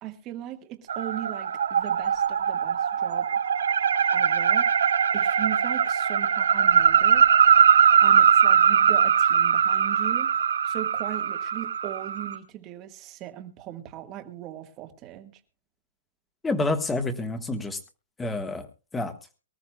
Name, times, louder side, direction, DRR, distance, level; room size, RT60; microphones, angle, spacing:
voice 1, 0.0-3.3 4.1-4.7 5.1-7.3 8.0-10.3 10.6-15.4, right 13 dB, 20° right, 7 dB, 1.4 m, -38 dB
sound 1, 0.9-12.4, right 7 dB, 85° right, 3.1 m, -21 dB
voice 2, 16.4-17.8 18.2-18.7 18.9-19.1, left 2 dB, 5° left, 8 dB, 1.3 m, -28 dB
24.0 x 13.5 x 2.2 m, 0.32 s
hypercardioid pair, 170°, 0 cm